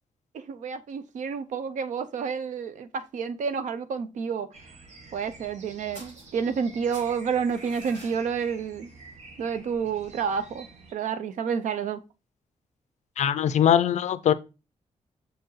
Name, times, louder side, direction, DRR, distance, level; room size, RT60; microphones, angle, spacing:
voice 1, 0.3-4.5 5.1-8.9 9.4-12.0, right 6 dB, 80° right, 0.5 m, -30 dB
sound 1, 4.5-10.9, right 3 dB, 65° right, 1.2 m, -48 dB
sound 2, 5.9-6.6 6.9-8.2, right 1 dB, 45° right, 3.9 m, -48 dB
voice 2, 13.2-14.3, left 9 dB, 65° left, 0.4 m, -21 dB
6.6 x 4.6 x 3.1 m
wide cardioid pair, 170°, 13 cm